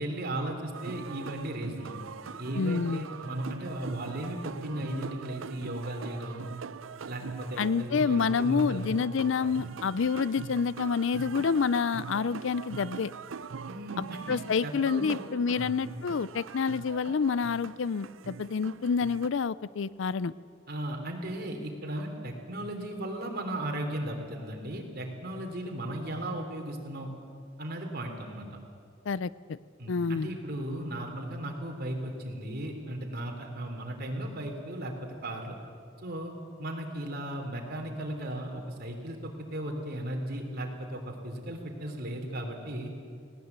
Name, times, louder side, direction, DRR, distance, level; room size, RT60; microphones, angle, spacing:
voice 1, 0.0-2.0 2.4-6.4 7.1-9.0 9.5-9.6 13.7-15.2 15.5-15.7 20.7-27.1 27.6-28.5 29.8-34.9 35.2-35.6 36.0-36.3 36.6-42.9, right 1 dB, 55° right, 2 dB, 3.3 m, -36 dB
sound 1, 0.7-19.3, right 5 dB, 80° right, 0.6 m, -42 dB
voice 2, 2.5-3.0 7.6-13.1 14.3-20.3 29.1-29.6 29.9-30.3, left 5 dB, 70° left, 19 dB, 0.5 m, -28 dB
19.5 x 18.0 x 8.1 m, 2.2 s
head